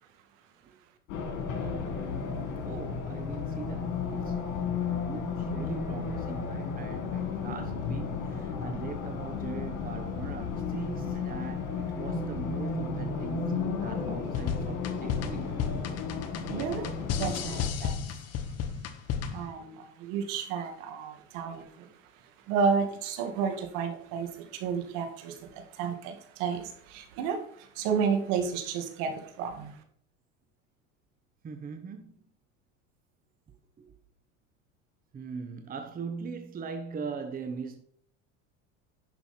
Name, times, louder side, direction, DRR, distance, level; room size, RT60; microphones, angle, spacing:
Race car auto racing, 1.1-17.7, left 5 dB, 75° left, 3.6 m, -33 dB
voice 1, 1.4-4.4 5.0-15.5 31.4-32.2 35.1-37.8, right 5 dB, 20° right, 1.0 m, -41 dB
sound 1, 14.3-19.5, left 7 dB, 40° left, 1.1 m, -33 dB
voice 2, 16.5-18.1 19.3-21.9 22.5-29.8, right 6 dB, 70° right, 2.3 m, -32 dB
10.5 x 6.1 x 4.4 m
supercardioid pair, 125°, 40 cm